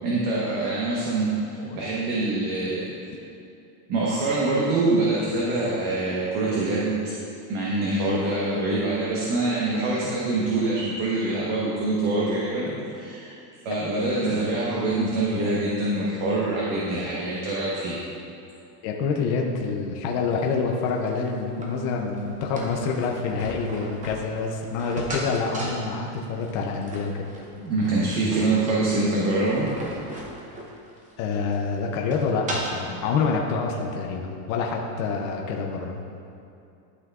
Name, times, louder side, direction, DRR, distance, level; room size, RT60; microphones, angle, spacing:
voice 1, 0.0-2.8 3.9-7.0 7.5-13.3 13.6-18.0 27.6-29.7 32.9-33.0, right 2 dB, 45° right, -5 dB, 1.2 m, -25 dB
voice 2, 18.8-27.3 31.2-36.0, left 4 dB, 35° left, 1 dB, 0.5 m, -27 dB
sound 1, 20.1-32.9, right 1 dB, 15° right, 0.7 m, -38 dB
12.0 x 5.8 x 2.4 m, 2.6 s
supercardioid pair, 150°, 49 cm